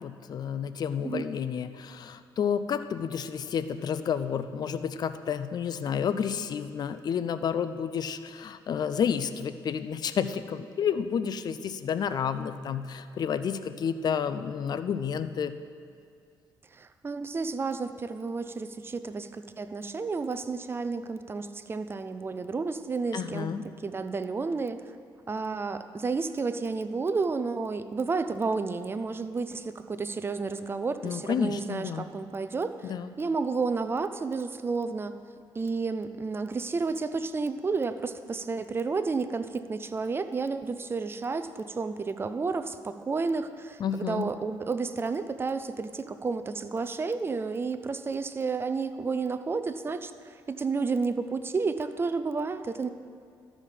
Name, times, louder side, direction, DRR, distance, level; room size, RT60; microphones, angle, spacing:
voice 1, 0.0-15.5 23.1-23.6 31.0-32.1 32.8-33.1 43.8-44.3, left 7 dB, 50° left, 11 dB, 0.5 m, -30 dB
voice 2, 16.7-23.5 23.8-24.8 25.3-32.9 33.2-35.1 35.5-52.9, right 4 dB, 25° right, 10 dB, 0.5 m, -31 dB
13.0 x 5.0 x 5.7 m, 2.3 s
cardioid pair, 85°, 9 cm